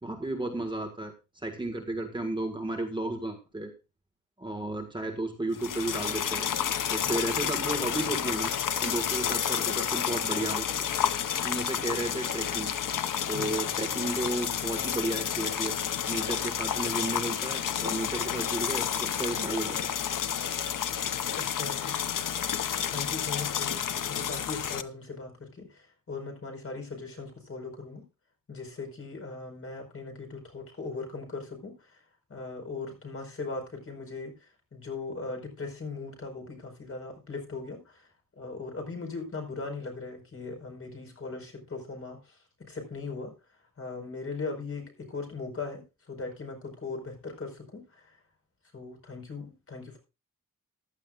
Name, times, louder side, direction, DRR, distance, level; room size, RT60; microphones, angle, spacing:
voice 1, 0.0-3.7 4.4-6.5 6.9-8.5 8.8-10.9 11.4-12.7 13.3-15.8 16.1-19.9, right 2 dB, 15° right, 3 dB, 1.6 m, -33 dB
sound 1, 5.5-24.8, left 9 dB, 80° left, 0.8 m, -30 dB
voice 2, 21.3-22.1 22.9-28.0 28.5-32.0 32.3-38.1 38.4-43.3 43.8-48.2 48.7-50.0, left 4 dB, 45° left, 3 dB, 4.7 m, -39 dB
15.0 x 11.5 x 2.4 m, 0.28 s
wide cardioid pair, 155°, 32 cm